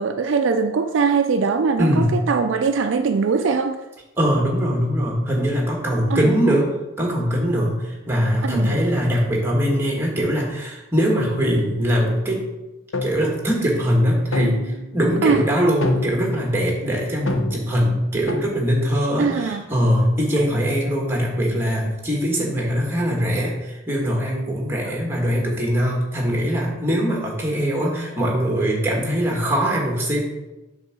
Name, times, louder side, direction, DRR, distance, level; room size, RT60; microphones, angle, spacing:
voice 1, 0.0-3.8 6.1-6.3 8.4-8.8 15.2-15.4 19.2-19.7 24.8-24.9, right 5 dB, 60° right, 7 dB, 0.4 m, -21 dB
voice 2, 1.8-2.2 4.2-6.7 7.0-12.5 13.0-30.2, equal, 10° right, -1 dB, 1.5 m, -21 dB
sound 1, 12.9-13.3 14.3-14.9 15.8-16.4 17.3-17.8 18.3-18.6, left 2 dB, 70° left, 0.8 m, -26 dB
7.9 x 3.7 x 6.1 m, 1.0 s
head